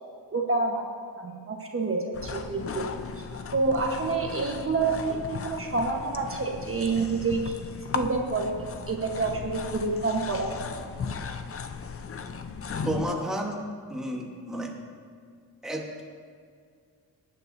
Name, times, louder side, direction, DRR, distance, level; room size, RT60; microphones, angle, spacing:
voice 1, 0.3-0.9 1.2-2.9 3.2-7.6 7.9-8.5 8.9-10.5, right 3 dB, 30° right, 1 dB, 1.2 m, -28 dB
sound 1, 2.1-13.1, left 5 dB, 35° left, 0.6 m, -36 dB
voice 2, 12.8-13.6 13.9-14.7 15.6-16.0, right 1 dB, ahead, -1 dB, 1.2 m, -31 dB
18.0 x 9.4 x 2.7 m, 2.1 s
cardioid pair, 105°, 42 cm